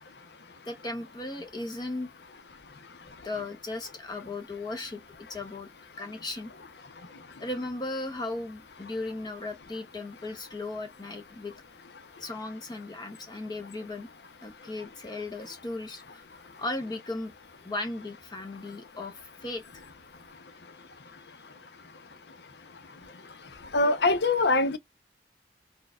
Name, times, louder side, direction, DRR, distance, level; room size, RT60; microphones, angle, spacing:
voice 1, 0.6-2.1 3.2-5.0 5.3-5.7 6.0-6.5 7.4-11.5 12.2-14.1 14.4-17.3 17.6-19.8 23.3-23.4, left 2 dB, 25° left, 0.6 m, -36 dB
voice 2, 23.7-24.8, left 2 dB, 70° left, 0.7 m, -23 dB
4.5 x 2.2 x 2.3 m
head